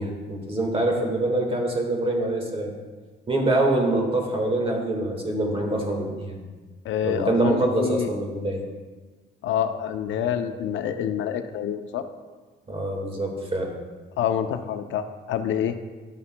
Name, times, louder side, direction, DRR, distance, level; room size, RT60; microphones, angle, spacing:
voice 1, 0.0-2.7 3.3-6.4 7.0-8.6 12.7-13.7, right 2 dB, 30° right, 1 dB, 1.6 m, -25 dB
voice 2, 6.8-8.1 9.4-12.1 14.2-15.8, left 9 dB, 75° left, 9 dB, 0.5 m, -27 dB
11.5 x 6.8 x 2.2 m, 1.4 s
cardioid pair, 90°, 20 cm